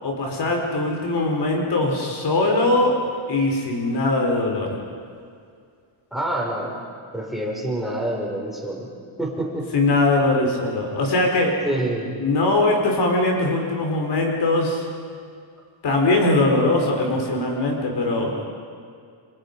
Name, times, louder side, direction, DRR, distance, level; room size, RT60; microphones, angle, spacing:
voice 1, 0.0-3.0 3.3-4.8 9.7-11.6 12.2-14.9 15.8-18.4, left 2 dB, 55° left, 1 dB, 4.3 m, -21 dB
voice 2, 6.1-8.9 9.2-9.8 11.6-12.2, right 1 dB, ahead, -2 dB, 6.0 m, -27 dB
29.5 x 27.0 x 5.3 m, 2.2 s
cardioid pair, 130°, 49 cm